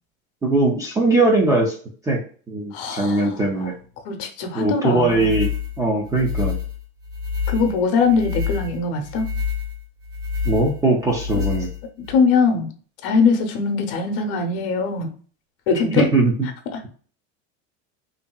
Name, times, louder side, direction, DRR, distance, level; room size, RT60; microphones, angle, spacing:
voice 1, 0.4-1.7 2.0-2.2 2.5-3.7 4.5-5.5 5.8-6.6 10.4-11.7 16.0-16.3, right 2 dB, 10° right, -2 dB, 0.3 m, -20 dB
voice 2, 2.7-3.7 4.0-5.3 7.5-9.3 11.3-11.4 12.1-12.7 13.0-15.1 15.7-16.1 16.7-16.8, left 4 dB, 60° left, 5 dB, 0.7 m, -21 dB
sound 1, 5.0-12.2, left 6 dB, 75° right, 1.1 m, -28 dB
2.8 x 2.6 x 2.2 m, 0.42 s
supercardioid pair, 130°, 33 cm